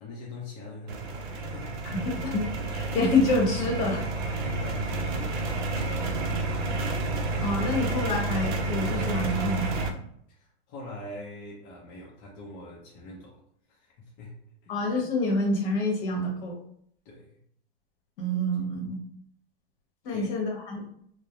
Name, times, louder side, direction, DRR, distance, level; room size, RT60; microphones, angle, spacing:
voice 1, 0.0-1.8 4.4-6.6 10.3-13.4 13.7-14.7 17.0-17.4 20.1-20.3, left 1 dB, 35° left, -4 dB, 0.5 m, -43 dB
sound 1, 0.9-9.9, right 3 dB, 50° right, 0.5 m, -30 dB
voice 2, 2.0-4.0 4.3-4.4 7.4-9.7 14.7-16.6 18.2-19.0 20.0-20.8, left 2 dB, 60° left, 0 dB, 0.9 m, -27 dB
2.2 x 2.0 x 2.8 m, 0.67 s
supercardioid pair, 140°, 31 cm